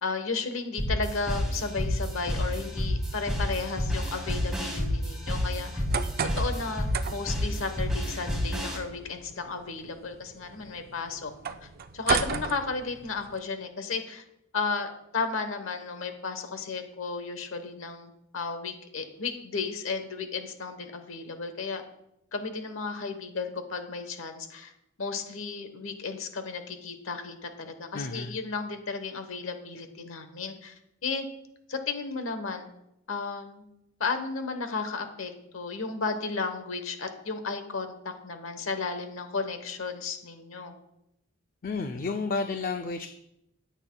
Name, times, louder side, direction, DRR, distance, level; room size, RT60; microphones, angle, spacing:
voice 1, 0.0-5.8 6.3-11.7 11.9-14.2 14.5-21.8 22.3-24.7 25.0-31.2 31.7-32.7 33.1-33.6 34.0-40.7, left 4 dB, 75° left, 8 dB, 1.1 m, -34 dB
sound 1, 0.8-8.8, equal, 5° right, 2.7 m, -30 dB
sound 2, 5.6-13.4, right 6 dB, 50° right, 0.5 m, -35 dB
voice 2, 27.9-28.4 41.6-43.1, left 4 dB, 45° left, 6 dB, 0.4 m, -31 dB
13.0 x 8.0 x 2.3 m, 0.83 s
head